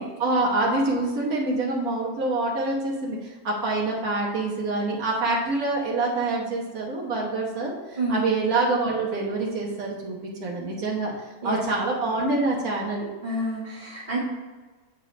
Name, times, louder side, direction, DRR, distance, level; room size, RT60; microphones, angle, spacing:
voice 1, 0.0-3.2 3.4-11.1 11.4-13.1, right 2 dB, 80° right, -3 dB, 1.7 m, -26 dB
voice 2, 8.0-8.3 11.4-11.7 13.2-14.2, right 2 dB, 35° right, -8 dB, 1.5 m, -28 dB
8.2 x 3.7 x 5.1 m, 1.3 s
omnidirectional pair, 1.5 m